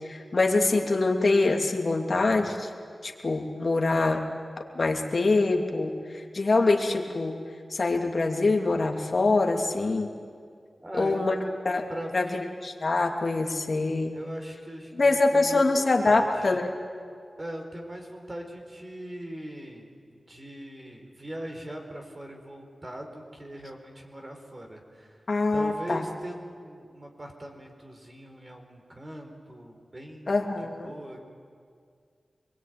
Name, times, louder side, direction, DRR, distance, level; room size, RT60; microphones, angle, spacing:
voice 1, 0.1-2.7 3.0-4.2 4.7-7.3 7.7-10.1 11.0-11.4 11.6-11.8 12.1-12.3 12.6-14.1 15.0-16.7 25.3-26.0 30.3-30.9, left 3 dB, 55° left, 2 dB, 2.9 m, -24 dB
voice 2, 10.8-12.4 14.1-16.6 17.4-25.2 25.5-31.2, right 1 dB, 30° right, 3 dB, 4.6 m, -40 dB
26.5 x 22.0 x 9.5 m, 2.2 s
wide cardioid pair, 70°, 0 cm